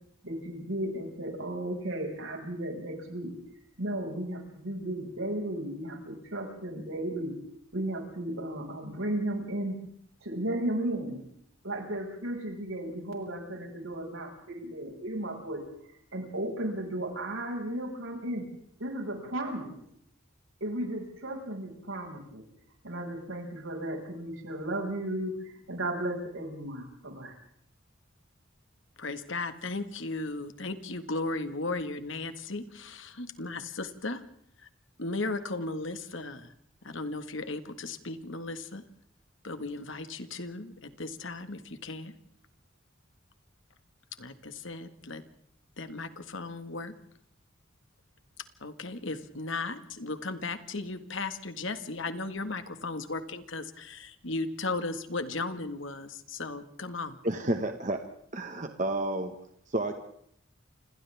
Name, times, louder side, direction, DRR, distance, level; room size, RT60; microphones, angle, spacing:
voice 1, 0.2-3.3 3.8-7.3 7.7-9.8 10.2-11.2 11.6-15.6 16.1-18.5 18.8-19.7 20.6-22.4 22.8-27.3, right 1 dB, 75° right, 2 dB, 6.2 m, -34 dB
voice 2, 29.0-34.2 34.6-34.7 35.0-36.5 36.8-38.8 39.4-42.1 44.2-45.2 45.8-46.9 48.6-57.2, left 3 dB, 65° left, 9 dB, 1.8 m, -36 dB
voice 3, 57.2-58.0 58.3-59.3 59.7-59.9, right 1 dB, 35° right, 6 dB, 1.5 m, -30 dB
28.5 x 27.0 x 3.6 m, 0.68 s
head